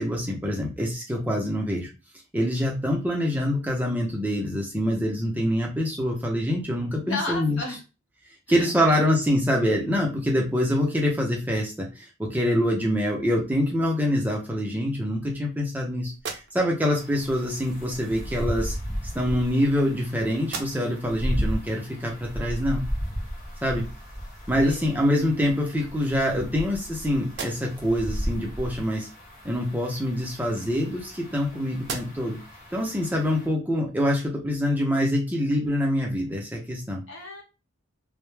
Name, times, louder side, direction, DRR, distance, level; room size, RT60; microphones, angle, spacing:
voice 1, 0.0-1.9 2.3-7.6 8.5-18.8 19.1-22.8 23.6-23.9 24.5-29.1 29.4-32.4 32.7-37.0, equal, 10° right, -1 dB, 0.5 m, -25 dB
voice 2, 7.0-7.8 8.5-9.0 24.6-24.9 37.1-37.4, left 2 dB, 65° left, 0 dB, 0.8 m, -33 dB
sound 1, 16.1-17.0 18.1-18.2 19.2-20.1 20.4-21.1 21.6-21.7 24.4-24.5 24.9-25.6 26.2-26.9 27.2-28.0 30.0-31.4 31.8-32.5, right 4 dB, 55° right, 0.5 m, -40 dB
sound 2, 16.9-33.5, equal, 40° left, 1.0 m, -35 dB
2.1 x 2.0 x 3.1 m, 0.29 s
head